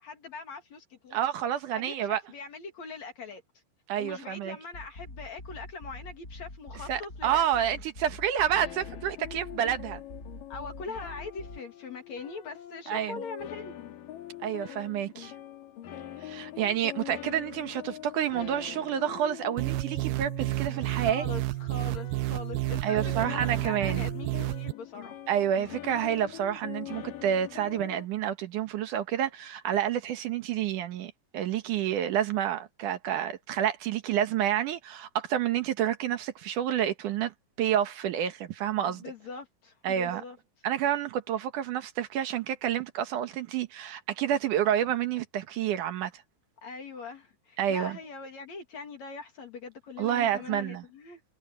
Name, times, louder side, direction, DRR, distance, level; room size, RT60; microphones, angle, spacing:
voice 1, 0.0-1.2 1.7-3.4 4.0-7.8 10.5-13.8 20.9-25.2 38.8-40.4 46.6-51.2, left 4 dB, 55° left, 3.4 m, -42 dB
voice 2, 1.1-2.2 3.9-4.6 6.9-10.0 12.9-13.2 14.4-15.3 16.2-21.3 22.8-24.1 25.3-37.3 37.6-39.0 39.8-40.2 40.6-46.1 47.6-48.0 50.0-50.8, right 10 dB, 70° right, 2.5 m, -29 dB
sound 1, 4.7-11.6, left 2 dB, 20° left, 7.2 m, -45 dB
sound 2, 8.5-28.1, left 13 dB, 75° left, 3.3 m, -44 dB
sound 3, 19.6-24.7, right 19 dB, 85° right, 2.3 m, -31 dB
omnidirectional pair, 4.1 m